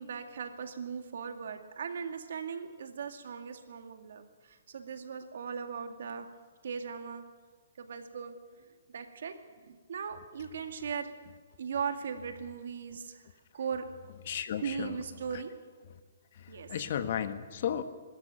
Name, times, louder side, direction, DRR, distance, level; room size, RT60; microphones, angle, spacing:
voice 1, 0.0-6.3 6.6-7.2 7.8-11.1 11.6-13.2 13.5-13.9 14.6-15.5 16.5-16.7, right 6 dB, 70° right, 7 dB, 2.2 m, -38 dB
voice 2, 14.3-15.0 15.3-15.4 16.3-17.8, left 9 dB, 55° left, 10 dB, 1.5 m, -34 dB
23.5 x 13.5 x 9.1 m, 1.4 s
hypercardioid pair, 145°, 0 cm